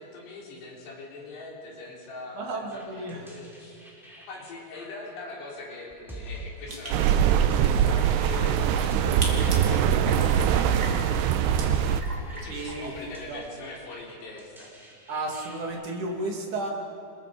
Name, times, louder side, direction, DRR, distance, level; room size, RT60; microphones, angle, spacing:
voice 1, 0.0-14.9, left 3 dB, 80° left, -3 dB, 5.9 m, -43 dB
voice 2, 2.4-3.3 9.0-9.3 12.4-12.9 13.3-13.4 15.1-16.7, right 2 dB, 50° right, 0 dB, 3.7 m, -33 dB
sound 1, 2.7-15.7, equal, ahead, 4.3 m, -46 dB
sound 2, 6.7-13.3, right 2 dB, 25° right, 2.7 m, -40 dB
sound 3, 6.9-12.0, right 9 dB, 85° right, 2.9 m, -22 dB
28.0 x 21.5 x 5.2 m, 2.7 s
omnidirectional pair, 4.8 m